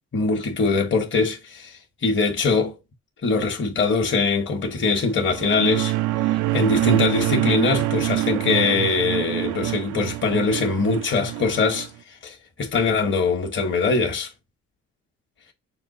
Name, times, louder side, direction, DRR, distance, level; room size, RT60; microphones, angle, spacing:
voice 1, 0.1-2.8 3.2-5.9 6.5-11.9 12.2-14.3, left 4 dB, 40° left, 1.1 m, -22 dB
sound 1, 5.2-11.9, right 17 dB, 85° right, 0.5 m, -25 dB
5.9 x 2.3 x 3.9 m
cardioid pair, 90°, 30 cm